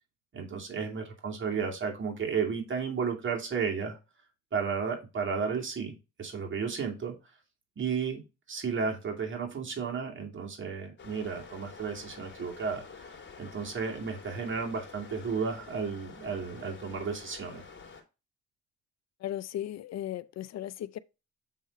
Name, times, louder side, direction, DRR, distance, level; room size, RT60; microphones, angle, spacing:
voice 1, 0.3-4.0 4.5-7.1 7.8-8.2 8.5-12.9 13.4-17.6, right 5 dB, 40° right, 2.4 m, -33 dB
sound 1, 11.0-18.0, left 5 dB, 40° left, 2.4 m, -49 dB
voice 2, 19.2-21.0, left 12 dB, 60° left, 0.5 m, -36 dB
7.5 x 3.8 x 4.1 m
cardioid pair, 90°, 30 cm